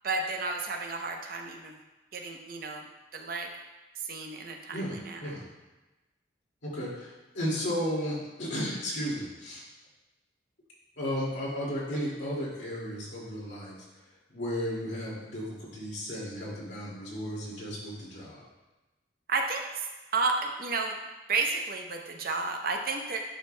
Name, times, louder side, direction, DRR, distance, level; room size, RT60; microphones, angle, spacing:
voice 1, 0.0-1.7 2.1-2.9 3.1-3.5 4.0-5.4 19.3-19.8 20.1-20.9 21.3-23.2, right 3 dB, 50° right, 3 dB, 0.6 m, -32 dB
voice 2, 4.7-5.4 6.6-9.6 11.0-13.7 14.3-18.4, equal, 70° left, -6 dB, 2.2 m, -34 dB
10.0 x 5.0 x 2.2 m, 1.1 s
head